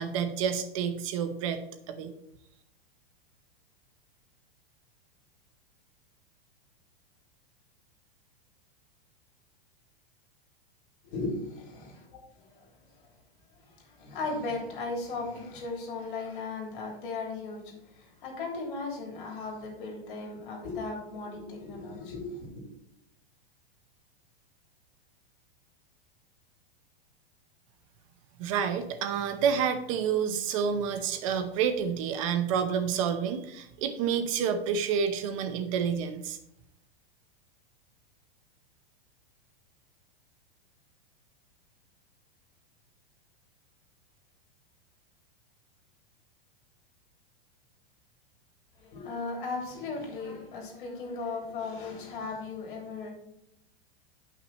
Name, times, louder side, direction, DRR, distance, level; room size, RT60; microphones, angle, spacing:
voice 1, 0.0-1.6 1.9-2.1 28.4-36.4, right 7 dB, 35° right, 8 dB, 0.7 m, -29 dB
voice 2, 11.0-13.0 13.6-22.6 48.8-53.1, left 3 dB, 60° left, 0 dB, 3.3 m, -37 dB
8.4 x 5.9 x 4.1 m, 0.80 s
supercardioid pair, 175°, 29 cm